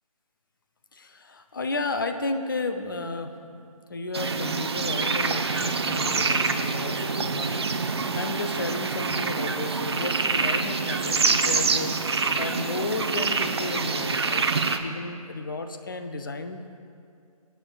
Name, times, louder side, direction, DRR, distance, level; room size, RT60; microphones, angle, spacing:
voice 1, 0.9-3.3 3.9-14.5 14.8-16.8, left 3 dB, 35° left, 8 dB, 0.6 m, -33 dB
sound 1, 4.1-14.8, right 4 dB, 45° right, 0.7 m, -26 dB
26.0 x 9.1 x 2.4 m, 2.4 s
figure-of-eight pair, 150°, 19 cm